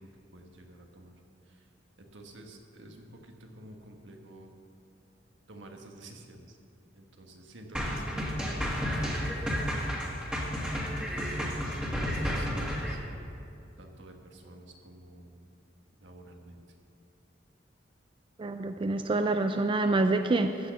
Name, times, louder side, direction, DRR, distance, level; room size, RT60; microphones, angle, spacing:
voice 1, 0.3-1.1 2.1-4.5 5.5-6.6 6.9-10.0 11.1-13.0 13.8-15.4 16.0-16.6, right 1 dB, 75° right, 2 dB, 1.4 m, -50 dB
sound 1, 7.7-13.0, equal, 5° right, 1.7 m, -31 dB
voice 2, 18.4-20.7, right 2 dB, 25° right, 7 dB, 0.4 m, -27 dB
14.5 x 6.3 x 7.0 m, 2.6 s
head